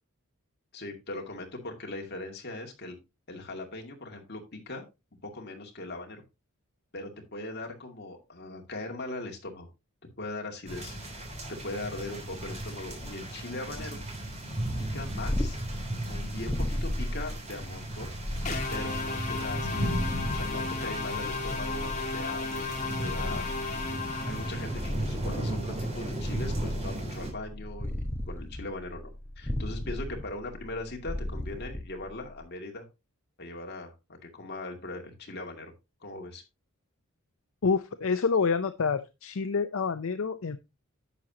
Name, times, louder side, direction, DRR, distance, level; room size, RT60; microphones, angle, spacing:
voice 1, 0.7-3.0 3.3-4.8 5.2-6.2 6.9-9.7 10.2-11.0 11.5-14.0 14.9-15.6 16.1-18.1 18.7-20.0 20.3-23.4 24.2-32.9 33.4-35.7 36.0-36.4, left 2 dB, 50° left, 2 dB, 2.3 m, -40 dB
sound 1, 10.7-27.3, right 1 dB, 30° right, 3.3 m, -36 dB
Purr, 15.0-32.5, left 1 dB, 10° left, 1.2 m, -36 dB
sound 2, 18.5-24.9, left 4 dB, 35° left, 1.9 m, -34 dB
voice 2, 37.6-40.6, left 5 dB, 70° left, 11 dB, 0.5 m, -27 dB
11.0 x 7.6 x 2.8 m, 0.25 s
head